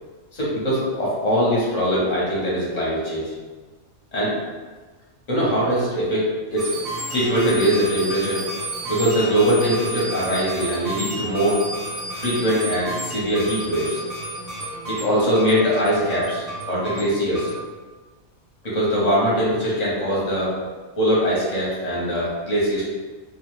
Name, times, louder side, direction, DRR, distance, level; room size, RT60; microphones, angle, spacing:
voice 1, 0.3-3.3 4.1-4.3 5.3-6.7 7.1-8.5 8.9-11.7 12.1-14.0 14.9-17.5 18.6-20.5 20.9-22.9, equal, 35° left, -7 dB, 0.9 m, -22 dB
sound 1, 6.6-17.6, right 1 dB, 15° right, 0.9 m, -31 dB
2.4 x 2.3 x 3.1 m, 1.4 s
omnidirectional pair, 1.4 m